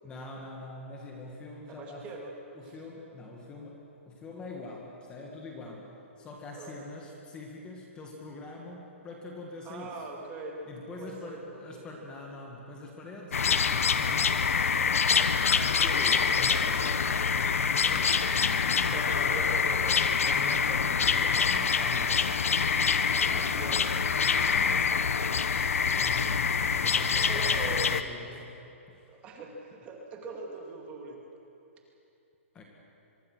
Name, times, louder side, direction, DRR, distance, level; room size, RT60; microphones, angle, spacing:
voice 1, 0.0-2.1 2.5-10.0 10.7-14.5 15.5-19.4 20.2-22.3 23.1-28.6 28.9-29.1 32.5-32.6, left 2 dB, 10° left, 0 dB, 2.0 m, -44 dB
voice 2, 1.7-2.3 2.6-2.8 6.5-6.8 9.6-11.9 16.0-16.3 18.9-20.0 23.5-23.9 27.3-28.0 29.1-31.2, right 3 dB, 15° right, 1 dB, 2.3 m, -41 dB
sound 1, 13.3-28.0, left 6 dB, 85° left, 1.2 m, -26 dB
24.0 x 24.0 x 6.3 m, 2.8 s
hypercardioid pair, 165°, 7 cm